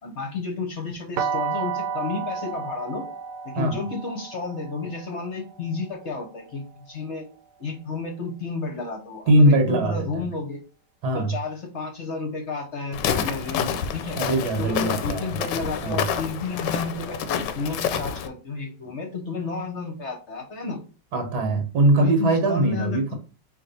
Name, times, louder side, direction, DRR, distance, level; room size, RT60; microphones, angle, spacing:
voice 1, 0.0-3.0 3.4-7.2 7.6-10.6 11.1-14.2 14.6-20.8 22.0-23.1, left 4 dB, 50° left, 2 dB, 1.1 m, -32 dB
sound 1, 1.2-7.0, right 6 dB, 85° right, 1.3 m, -32 dB
voice 2, 9.3-10.3 11.0-11.3 14.1-15.4 15.8-16.0 21.1-23.1, right 1 dB, 65° right, 5 dB, 1.6 m, -21 dB
Walk footsteps, 12.9-18.3, left 7 dB, 90° left, 1.2 m, -28 dB
4.3 x 3.0 x 4.0 m, 0.34 s
omnidirectional pair, 1.8 m